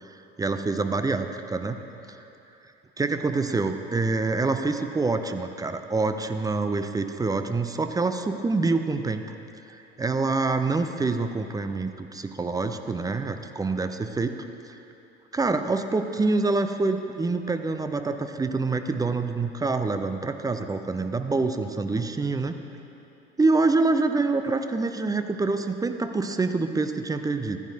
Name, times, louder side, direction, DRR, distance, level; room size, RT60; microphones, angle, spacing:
voice 1, 0.4-1.8 3.0-9.3 9.7-14.5 15.3-22.6 23.4-27.6, right 3 dB, 10° right, 8 dB, 0.5 m, -26 dB
14.5 x 9.5 x 2.7 m, 2.9 s
hypercardioid pair, 65°, 30 cm